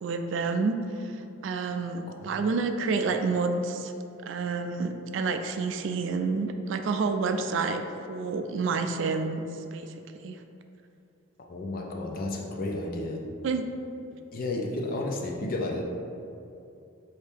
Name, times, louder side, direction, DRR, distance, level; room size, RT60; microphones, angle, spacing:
voice 1, 0.0-3.9 4.2-7.8 8.1-9.5 9.7-9.9 10.2-10.4 13.4-13.7, right 4 dB, 65° right, 7 dB, 0.3 m, -29 dB
voice 2, 2.1-2.4 11.5-13.3 14.3-15.8, left 2 dB, 45° left, 1 dB, 0.4 m, -32 dB
4.4 x 2.8 x 3.4 m, 2.7 s
head